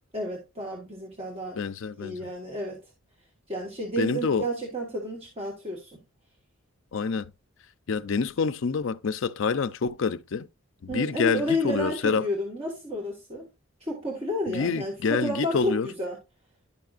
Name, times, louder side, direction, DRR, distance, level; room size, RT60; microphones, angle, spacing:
voice 1, 0.1-1.6 2.0-2.8 3.5-6.0 10.9-13.4 13.8-16.2, equal, 25° right, 1.6 m, -31 dB
voice 2, 1.6-2.2 4.0-4.5 6.9-7.3 7.9-10.5 10.8-12.3 14.5-15.9, left 5 dB, 60° left, 0.4 m, -27 dB
11.0 x 5.7 x 2.5 m
head